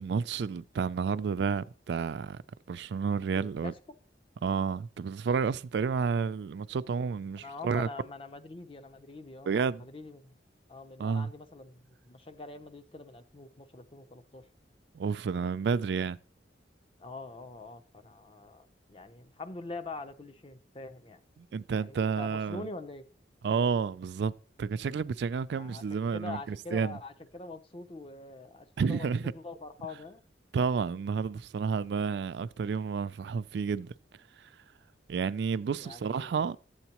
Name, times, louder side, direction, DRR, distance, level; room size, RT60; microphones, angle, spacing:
voice 1, 0.0-2.4 2.7-3.7 4.4-7.9 9.5-9.8 11.0-11.3 14.9-16.2 21.4-22.7 23.4-24.3 24.6-27.0 28.8-29.3 30.5-33.9 34.4-34.5 35.1-36.6, right 5 dB, 65° right, 0.3 m, -30 dB
voice 2, 3.3-3.7 7.4-10.3 10.7-14.4 17.0-21.2 21.7-23.0 25.6-25.8 26.1-30.2 35.8-36.6, left 3 dB, 30° left, 0.6 m, -44 dB
11.5 x 8.0 x 2.9 m
head